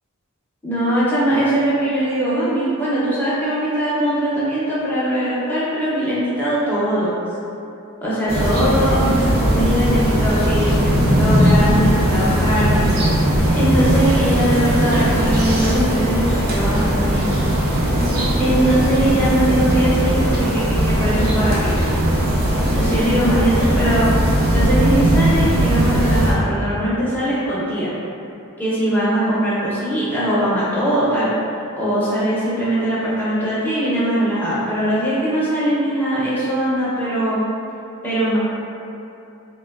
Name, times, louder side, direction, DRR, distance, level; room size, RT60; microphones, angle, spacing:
voice 1, 0.6-7.1 8.0-12.9 13.3-17.3 18.4-21.9 22.7-24.2 24.5-27.9 28.6-31.3 31.7-37.4 38.0-38.4, right 1 dB, 10° left, -10 dB, 0.6 m, -21 dB
sound 1, 8.3-26.3, equal, 45° right, 0.5 m, -18 dB
3.3 x 2.1 x 2.3 m, 2.8 s
head